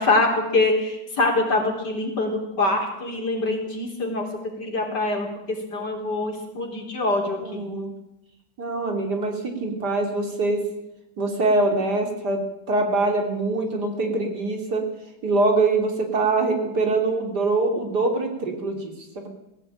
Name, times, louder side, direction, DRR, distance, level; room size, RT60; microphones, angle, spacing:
voice 1, 0.0-4.3 4.6-7.7, left 2 dB, 70° left, 2 dB, 4.5 m, -24 dB
voice 2, 7.4-7.9 8.6-10.6 11.2-12.4 12.7-14.8 15.2-19.3, right 3 dB, 70° right, 3 dB, 3.7 m, -24 dB
19.0 x 16.0 x 9.0 m, 0.89 s
omnidirectional pair, 1.9 m